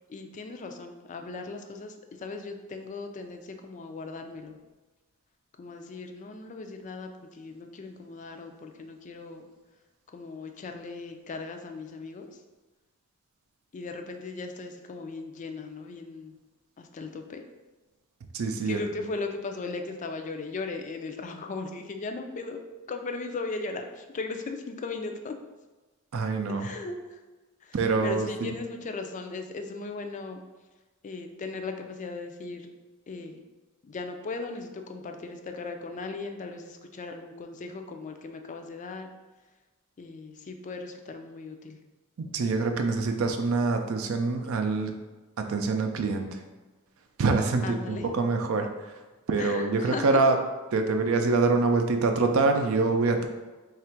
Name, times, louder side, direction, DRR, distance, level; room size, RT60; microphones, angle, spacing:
voice 1, 0.1-4.6 5.6-9.5 10.1-12.4 13.7-16.3 16.8-17.4 18.6-25.4 26.5-27.2 27.6-27.8 28.0-30.4 31.0-32.7 33.1-33.4 33.8-39.1 40.0-41.8 47.6-48.1 49.4-50.1, left 3 dB, 35° left, 5 dB, 0.3 m, -37 dB
voice 2, 18.3-18.8 26.1-26.7 27.7-28.3 42.2-44.9 45.4-46.4 47.2-48.7 49.3-50.4 50.7-53.3, right 3 dB, 75° right, 5 dB, 0.4 m, -25 dB
3.3 x 2.4 x 4.4 m, 1.2 s
head